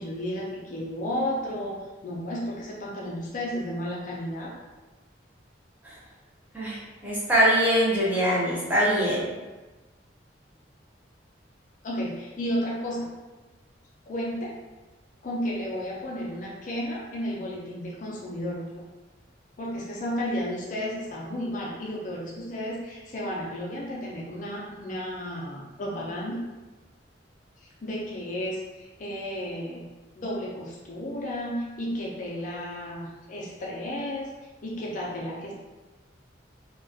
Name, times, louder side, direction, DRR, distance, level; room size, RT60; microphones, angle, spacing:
voice 1, 0.0-4.5 11.8-13.1 14.1-14.6 15.2-18.8 19.6-26.4 27.6-29.8 30.2-35.5, equal, 40° left, -3 dB, 0.4 m, -33 dB
voice 2, 6.5-9.3, equal, 10° right, -8 dB, 0.6 m, -23 dB
2.3 x 2.2 x 2.5 m, 1.2 s
head